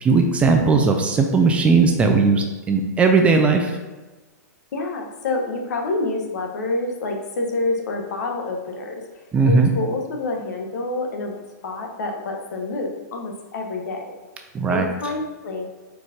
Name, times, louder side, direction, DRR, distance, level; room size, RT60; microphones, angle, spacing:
voice 1, 0.0-3.8 9.3-9.7 14.5-14.9, right 4 dB, 10° right, 3 dB, 0.4 m, -17 dB
voice 2, 4.7-8.9 9.4-14.0 14.7-15.6, left 2 dB, 70° left, 2 dB, 1.2 m, -27 dB
4.6 x 4.1 x 5.0 m, 1.2 s
hypercardioid pair, 150°, 10 cm